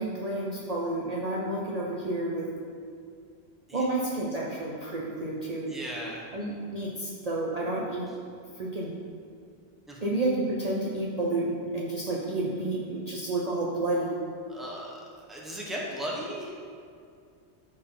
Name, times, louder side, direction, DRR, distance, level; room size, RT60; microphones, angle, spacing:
voice 1, 0.0-2.5 3.7-5.7 6.3-8.1 8.6-8.9 10.0-14.1, right 2 dB, 40° right, -4 dB, 0.9 m, -30 dB
voice 2, 5.7-6.3 9.9-10.1 14.5-15.0 15.3-16.6, equal, ahead, -4 dB, 1.2 m, -36 dB
12.5 x 4.3 x 4.0 m, 2.3 s
omnidirectional pair, 1.1 m